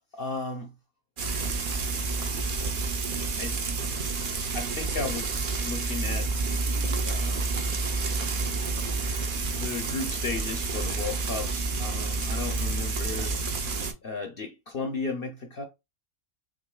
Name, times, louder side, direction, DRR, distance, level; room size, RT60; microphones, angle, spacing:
voice 1, 0.1-0.7 3.4-3.7 4.5-7.6 9.0-13.4 14.0-15.6, left 4 dB, 55° left, 0.7 m, -35 dB
Frying (food), 1.2-13.9, right 3 dB, 50° right, 0.7 m, -29 dB
6.2 x 2.6 x 2.2 m
omnidirectional pair, 1.4 m